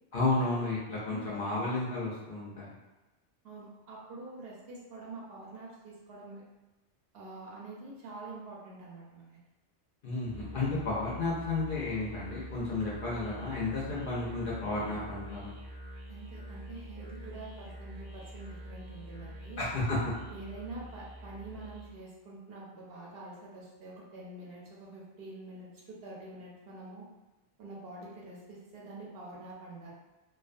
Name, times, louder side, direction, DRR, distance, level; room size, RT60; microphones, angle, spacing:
voice 1, 0.1-2.7 10.0-15.5 19.6-20.1, left 2 dB, 60° left, -6 dB, 0.6 m, -32 dB
voice 2, 3.4-6.4 7.1-9.4 16.1-19.6 20.3-27.0 27.6-29.9, right 2 dB, 65° right, -4 dB, 0.7 m, -46 dB
Musical instrument, 10.2-22.0, equal, 20° right, 0.7 m, -46 dB
2.3 x 2.2 x 2.5 m, 1.1 s
omnidirectional pair, 1.2 m